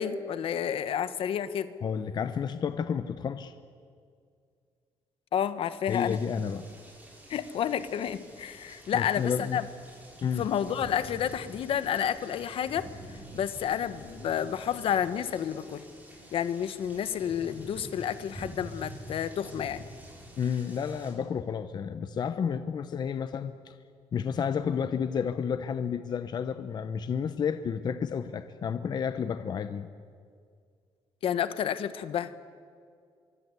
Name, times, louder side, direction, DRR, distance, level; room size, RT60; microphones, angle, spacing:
voice 1, 0.0-1.7 5.3-6.2 7.3-9.6 10.4-12.9 13.3-15.8 16.3-19.9 31.2-32.3, left 9 dB, 65° left, 12 dB, 1.3 m, -30 dB
voice 2, 1.8-3.5 5.9-6.6 8.9-9.6 10.2-10.4 20.4-23.7 24.1-29.9, left 7 dB, 45° left, 10 dB, 0.9 m, -31 dB
sound 1, 5.8-21.1, right 1 dB, 15° right, 6.8 m, -48 dB
24.5 x 23.5 x 8.3 m, 2.2 s
cardioid pair, 140°, 10 cm